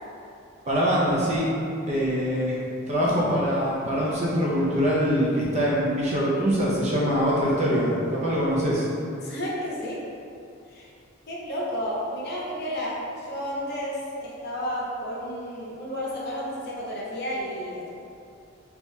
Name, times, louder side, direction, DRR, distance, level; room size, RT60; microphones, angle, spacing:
voice 1, 0.7-1.5 1.9-2.6 2.9-8.9, equal, 30° right, -6 dB, 0.5 m, -23 dB
voice 2, 9.2-10.0 10.7-10.9 11.3-17.9, equal, 50° left, -5 dB, 0.7 m, -32 dB
3.6 x 2.9 x 2.6 m, 2.5 s
head